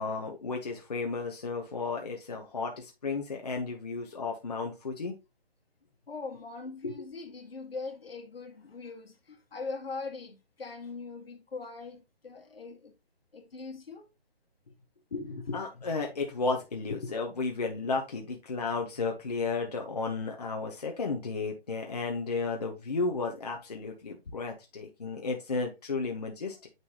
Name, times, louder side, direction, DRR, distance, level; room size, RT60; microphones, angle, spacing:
voice 1, 0.0-5.1 6.8-6.9 15.1-26.7, left 4 dB, 40° left, 1.0 m, -33 dB
voice 2, 6.1-12.9 13.3-14.1, left 4 dB, 70° left, 2.0 m, -41 dB
9.4 x 4.0 x 2.9 m
hypercardioid pair, 180°, 31 cm